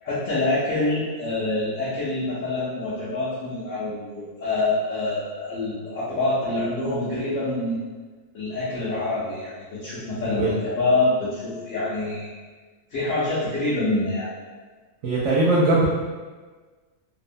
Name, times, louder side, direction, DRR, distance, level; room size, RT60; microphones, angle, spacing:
voice 1, 0.0-7.9 8.3-12.3 12.9-14.3, left 2 dB, 70° left, -11 dB, 1.1 m, -26 dB
voice 2, 10.2-10.5 15.0-15.9, right 2 dB, 75° right, -6 dB, 0.9 m, -20 dB
2.8 x 2.1 x 2.5 m, 1.4 s
omnidirectional pair, 1.4 m